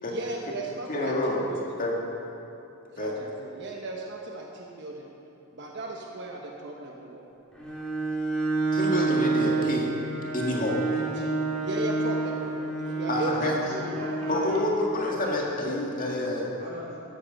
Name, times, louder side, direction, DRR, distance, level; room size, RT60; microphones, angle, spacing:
voice 1, 0.0-1.6 2.9-5.1 5.5-7.2 10.9-11.3 11.6-13.6, right 2 dB, 50° right, 0 dB, 1.1 m, -36 dB
voice 2, 0.9-1.4 1.8-2.0 3.0-3.1 8.7-9.9 10.3-10.8 13.1-13.6 14.3-16.5, left 1 dB, 40° left, -2 dB, 1.9 m, -28 dB
Bowed string instrument, 7.5-14.6, right 3 dB, 5° left, 2.8 m, -29 dB
voice 3, 13.1-14.6 15.2-15.4 16.6-17.0, equal, 35° right, -6 dB, 4.0 m, -39 dB
13.5 x 13.0 x 5.3 m, 2.9 s
head